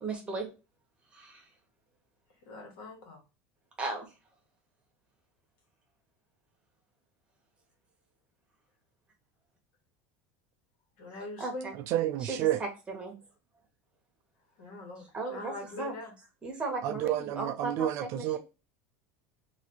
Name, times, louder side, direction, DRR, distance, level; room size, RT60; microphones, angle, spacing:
voice 1, 0.0-0.5 1.1-1.4 3.8-4.1 11.4-11.7 12.2-13.2 15.1-15.5 15.8-15.9 16.4-17.9 18.1-18.4, right 3 dB, 15° right, 1.0 m, -36 dB
voice 2, 2.4-3.2 11.0-11.7 14.6-16.1, left 2 dB, 65° left, 1.5 m, -42 dB
voice 3, 11.9-12.6 16.8-18.4, right 12 dB, 45° right, 0.3 m, -30 dB
3.2 x 2.5 x 2.8 m
cardioid pair, 160°, 7 cm